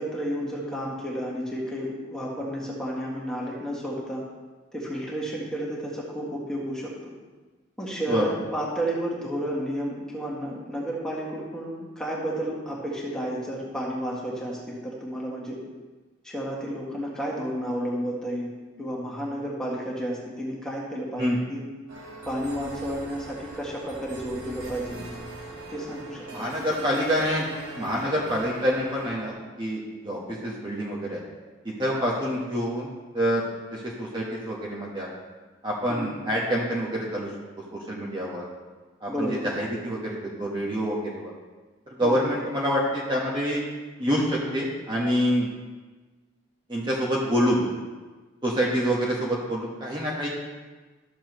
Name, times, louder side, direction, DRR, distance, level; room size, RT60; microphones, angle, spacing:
voice 1, 0.0-4.2 4.7-7.1 7.8-15.6 16.2-18.5 18.8-21.6 22.3-25.0 25.7-26.5 35.9-36.2 39.1-39.5 42.0-42.2, equal, 5° left, -5 dB, 1.9 m, -31 dB
sound 1, 21.9-29.3, right 2 dB, 85° right, 2.0 m, -41 dB
voice 2, 26.3-27.5 27.7-31.2 31.8-32.9 33.1-33.4 33.7-35.1 35.6-37.3 37.9-38.4 39.0-41.3 42.0-43.6 44.0-45.5 46.7-47.6 48.4-50.3, equal, 25° right, -5 dB, 1.3 m, -26 dB
13.5 x 7.2 x 3.1 m, 1.3 s
head